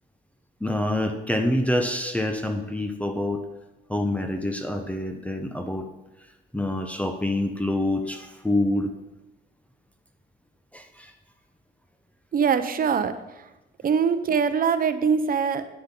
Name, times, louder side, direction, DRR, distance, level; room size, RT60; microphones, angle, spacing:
voice 1, 0.6-3.4 3.9-5.9 6.5-8.9 10.7-11.1, left 1 dB, 5° left, 5 dB, 0.8 m, -26 dB
voice 2, 12.3-13.4 13.8-15.7, right 6 dB, 45° right, 10 dB, 0.8 m, -23 dB
9.5 x 9.0 x 3.8 m, 1.0 s
cardioid pair, 90°, 20 cm